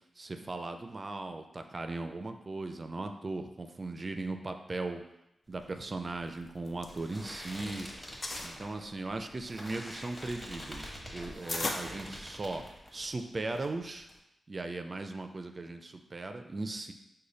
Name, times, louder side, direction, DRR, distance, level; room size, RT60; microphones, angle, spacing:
voice 1, 0.2-5.0 5.5-7.9 8.4-12.6 12.9-14.1 14.5-16.9, right 2 dB, 40° right, 6 dB, 0.4 m, -38 dB
sound 1, 5.5-13.2 13.5-14.2, equal, 15° left, 1.2 m, -46 dB
sound 2, 6.5-7.6 7.9-8.6 9.2-12.7, left 2 dB, 50° left, 0.5 m, -39 dB
4.9 x 2.2 x 4.0 m, 0.88 s
cardioid pair, 65°, 0 cm